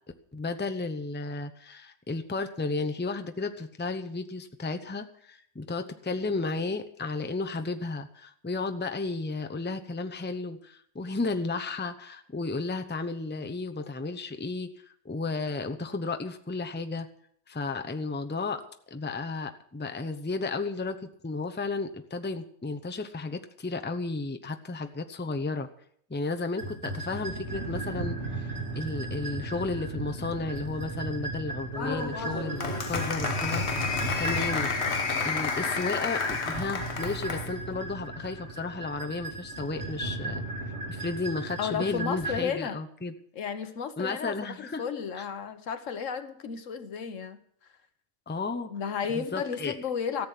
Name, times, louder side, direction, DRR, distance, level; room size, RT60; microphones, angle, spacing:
voice 1, 0.3-17.1 17.5-18.6 18.9-25.7 26.1-28.5 28.7-33.7 34.2-34.7 35.2-40.4 40.9-43.1 44.0-44.8 45.1-45.3 48.3-48.7 49.1-49.8, left 3 dB, 10° left, 7 dB, 0.7 m, -33 dB
sound 1, 26.6-42.4, right 2 dB, 65° right, 3.5 m, -36 dB
Applause, 31.7-37.5, left 5 dB, 60° left, 1.5 m, -31 dB
voice 2, 41.6-42.8 43.3-47.4 48.7-50.3, left 6 dB, 85° left, 11 dB, 1.4 m, -33 dB
14.0 x 7.7 x 8.3 m, 0.64 s
omnidirectional pair, 1.3 m